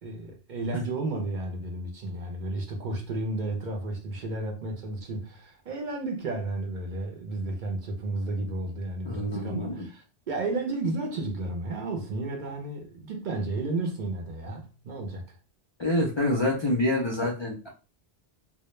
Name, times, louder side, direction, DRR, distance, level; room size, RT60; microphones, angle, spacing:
voice 1, 0.0-15.4, right 2 dB, 55° right, 0.6 m, -32 dB
voice 2, 9.0-9.8 15.8-17.7, left 1 dB, 50° left, 0.3 m, -27 dB
2.1 x 2.1 x 3.0 m
omnidirectional pair, 1.1 m